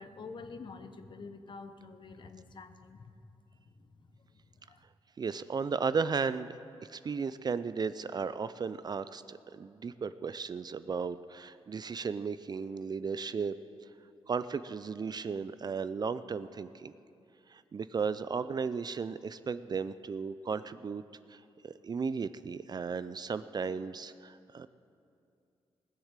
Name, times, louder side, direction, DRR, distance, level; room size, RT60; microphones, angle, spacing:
voice 1, 0.0-3.0 4.7-4.8, left 4 dB, 45° left, 9 dB, 1.0 m, -47 dB
voice 2, 5.2-6.5 6.9-13.6 14.3-16.9 17.5-21.0 21.3-24.7, right 5 dB, 40° right, 14 dB, 0.4 m, -35 dB
19.0 x 7.3 x 7.4 m, 2.5 s
cardioid pair, 90°, 11 cm